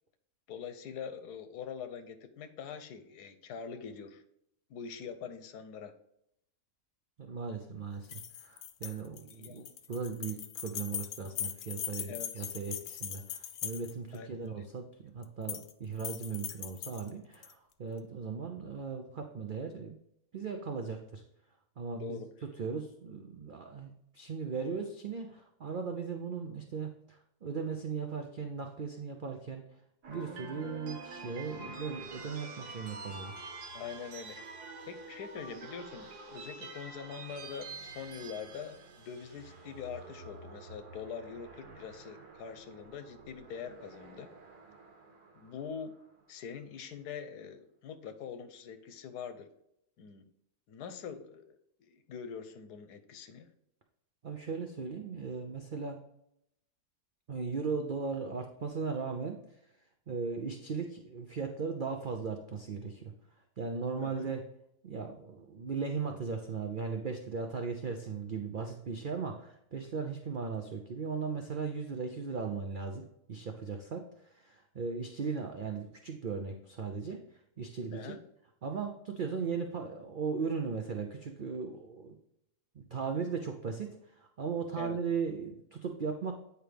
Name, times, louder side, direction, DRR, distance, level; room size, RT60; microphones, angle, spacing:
voice 1, 0.5-4.2 4.7-5.9 9.3-9.7 12.0-12.5 14.1-14.7 21.9-22.3 33.7-34.4 34.8-44.3 45.4-45.9 46.3-49.5 50.0-50.2 50.7-53.5 64.0-64.3 77.9-78.2 84.7-85.0, left 7 dB, 85° left, 10 dB, 1.3 m, -44 dB
voice 2, 7.2-20.0 20.3-21.2 21.8-22.2 22.6-29.6 30.1-33.4 54.2-56.0 57.3-59.4 60.1-63.1 63.6-64.4 64.8-77.2 77.6-78.2 78.6-82.1 82.7-86.3, right 5 dB, 55° right, 4 dB, 0.5 m, -37 dB
sound 1, 8.0-14.2 15.2-15.7 16.0-17.5, left 10 dB, 65° left, 0.7 m, -40 dB
sound 2, 30.0-46.2, right 3 dB, 90° right, 1.8 m, -48 dB
9.0 x 4.8 x 3.4 m, 0.77 s
omnidirectional pair, 1.7 m